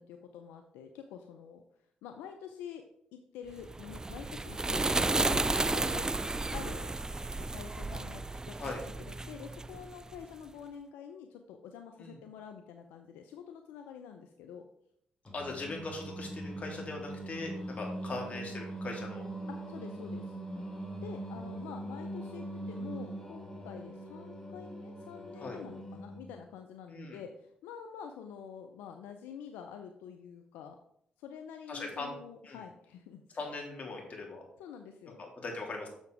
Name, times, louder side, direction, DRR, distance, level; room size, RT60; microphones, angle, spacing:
voice 1, 0.0-1.6 2.0-2.8 3.1-6.1 6.5-7.0 7.4-8.6 9.0-14.7 19.5-20.4 21.0-30.8 31.2-33.2 34.6-35.2, left 7 dB, 80° left, 5 dB, 0.6 m, -47 dB
sound 1, 3.6-10.3, right 2 dB, 20° right, 0.3 m, -33 dB
Singing, 15.2-26.4, right 1 dB, 20° left, 3.3 m, -42 dB
voice 2, 15.3-19.3 25.4-25.6 26.9-27.2 31.7-32.2 32.4-32.6 33.3-34.4 35.2-35.9, left 3 dB, 45° left, -1 dB, 3.2 m, -40 dB
7.3 x 6.6 x 4.8 m, 0.75 s
hypercardioid pair, 45°, 3 cm